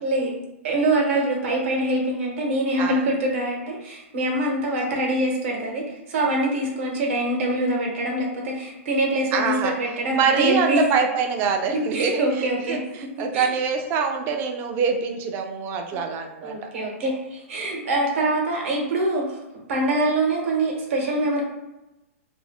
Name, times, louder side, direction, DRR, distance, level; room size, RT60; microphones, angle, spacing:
voice 1, 0.6-10.8 11.9-12.8 13.2-13.6 15.9-16.0 16.4-19.4 19.7-21.4, right 1 dB, 60° right, -1 dB, 0.9 m, -24 dB
voice 2, 9.3-9.7 10.1-16.7, right 6 dB, 25° right, 4 dB, 0.3 m, -25 dB
2.5 x 2.0 x 3.3 m, 0.97 s
hypercardioid pair, 145°, 8 cm